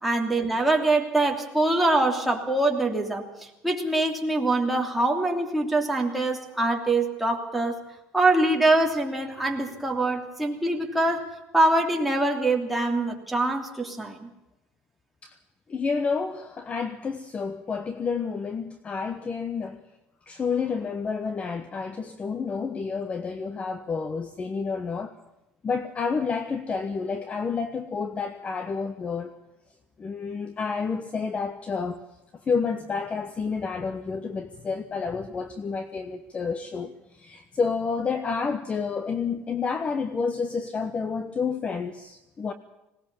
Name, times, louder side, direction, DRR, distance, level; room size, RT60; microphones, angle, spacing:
voice 1, 0.0-7.8 8.1-11.3 11.5-14.3, right 2 dB, ahead, 3.0 m, -24 dB
voice 2, 15.7-19.8 20.3-25.2 25.6-29.3 30.0-32.0 32.5-42.5, left 5 dB, 25° left, 1.0 m, -29 dB
20.0 x 18.5 x 7.2 m
cardioid pair, 135°, 5 cm